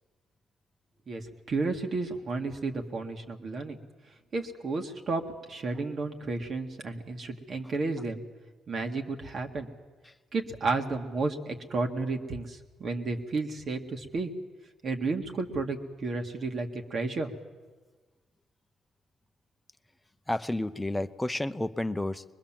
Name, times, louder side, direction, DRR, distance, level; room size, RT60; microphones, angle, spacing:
voice 1, 1.5-3.8 4.3-5.2 5.5-8.2 8.7-9.7 10.3-14.3 14.8-17.3, right 3 dB, 50° right, 4 dB, 2.0 m, -32 dB
voice 2, 20.3-22.2, left 1 dB, 10° left, 10 dB, 0.8 m, -31 dB
23.0 x 21.0 x 7.5 m, 1.3 s
cardioid pair, 90°, 0 cm